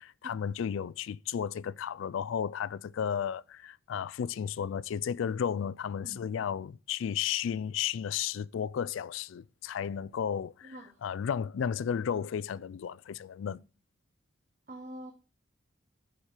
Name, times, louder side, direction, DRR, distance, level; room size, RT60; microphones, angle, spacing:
voice 1, 0.2-13.6, left 8 dB, 80° left, 0.3 m, -33 dB
voice 2, 14.7-15.1, right 1 dB, 40° right, 1.0 m, -45 dB
11.5 x 4.4 x 4.9 m
head